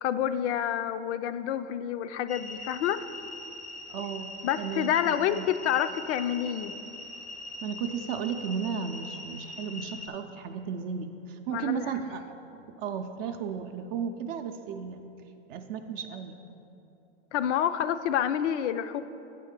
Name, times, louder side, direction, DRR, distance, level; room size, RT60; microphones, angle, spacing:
voice 1, 0.0-3.1 4.4-6.7 11.5-11.9 17.3-19.0, left 10 dB, 75° left, 12 dB, 0.5 m, -28 dB
sound 1, 2.3-10.1, left 2 dB, 5° left, 0.3 m, -42 dB
voice 2, 3.9-5.5 7.6-12.3 12.8-15.0 15.5-16.4, right 7 dB, 50° right, 5 dB, 0.5 m, -34 dB
8.2 x 4.2 x 6.5 m, 2.8 s
hypercardioid pair, 125°, 36 cm